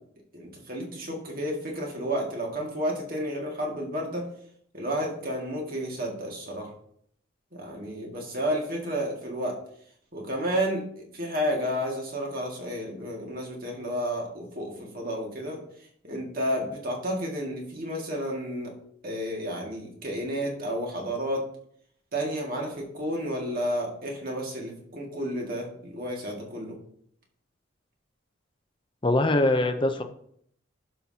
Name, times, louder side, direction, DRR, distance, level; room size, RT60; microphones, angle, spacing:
voice 1, 0.3-4.3 4.7-6.7 7.5-9.6 10.1-15.6 16.0-18.7 19.0-21.4 22.1-26.8, equal, 45° right, 0 dB, 2.0 m, -31 dB
voice 2, 29.0-30.0, left 2 dB, 25° left, 7 dB, 0.6 m, -22 dB
11.5 x 5.7 x 2.8 m, 0.65 s
head